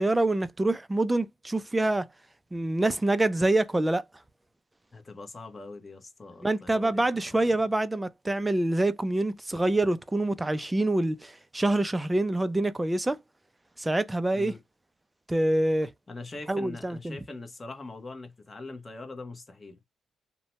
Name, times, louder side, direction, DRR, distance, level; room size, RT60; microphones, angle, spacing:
voice 1, 0.0-2.1 2.5-4.0 6.4-13.2 13.8-14.5 15.3-15.9 16.5-17.2, right 2 dB, 15° right, 0.4 m, -26 dB
voice 2, 4.9-7.6 14.3-14.6 16.1-19.8, left 3 dB, 25° left, 0.9 m, -42 dB
2.7 x 2.1 x 2.9 m
cardioid pair, 90°, 0 cm